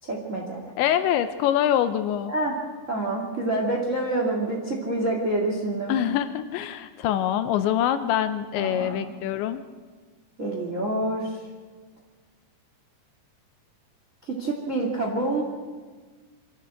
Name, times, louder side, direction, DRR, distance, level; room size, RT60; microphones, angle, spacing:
voice 1, 0.0-0.7 2.3-2.5 2.9-5.9 8.5-9.1 10.4-11.4 14.2-15.4, right 2 dB, 35° right, 0 dB, 1.2 m, -27 dB
voice 2, 0.8-2.3 5.9-9.6, left 10 dB, 80° left, 10 dB, 2.7 m, -24 dB
26.0 x 13.5 x 7.8 m, 1.5 s
omnidirectional pair, 5.9 m